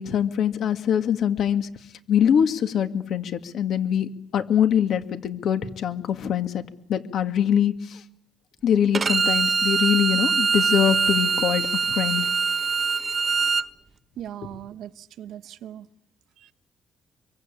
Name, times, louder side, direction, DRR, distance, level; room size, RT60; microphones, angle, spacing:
voice 1, 0.0-1.7 2.1-6.6 6.9-8.0 8.6-12.3, left 9 dB, 70° left, 2.2 m, -23 dB
Bowed string instrument, 8.9-13.7, right 5 dB, 35° right, 1.2 m, -23 dB
voice 2, 14.2-15.9 16.4-16.5, right 11 dB, 80° right, 1.3 m, -39 dB
26.5 x 23.5 x 8.7 m
cardioid pair, 90°, 0 cm